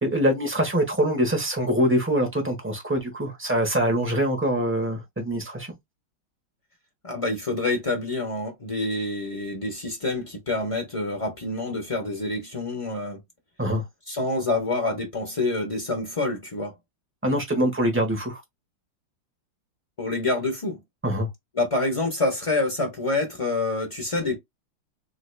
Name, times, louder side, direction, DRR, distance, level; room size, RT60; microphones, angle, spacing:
voice 1, 0.0-5.7 13.6-13.8 17.2-18.4 21.0-21.3, equal, 15° right, 0.4 m, -24 dB
voice 2, 7.0-13.2 14.1-16.7 20.0-20.8 21.5-24.4, left 2 dB, 60° left, 0.3 m, -27 dB
4.0 x 3.1 x 2.2 m
omnidirectional pair, 2.3 m